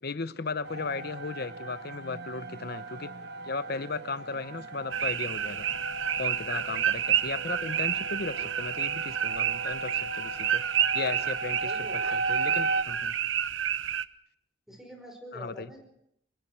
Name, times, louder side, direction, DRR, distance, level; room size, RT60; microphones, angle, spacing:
voice 1, 0.0-3.1 3.4-5.7 6.2-13.2 15.3-15.7, left 4 dB, 55° left, 14 dB, 0.9 m, -36 dB
sound 1, 0.6-12.8, right 3 dB, 60° right, 1.2 m, -36 dB
sound 2, 4.9-14.1, right 10 dB, 80° right, 0.8 m, -30 dB
voice 2, 11.6-12.0 14.7-15.9, equal, ahead, 4 dB, 5.3 m, -45 dB
26.0 x 22.5 x 4.6 m, 0.72 s
head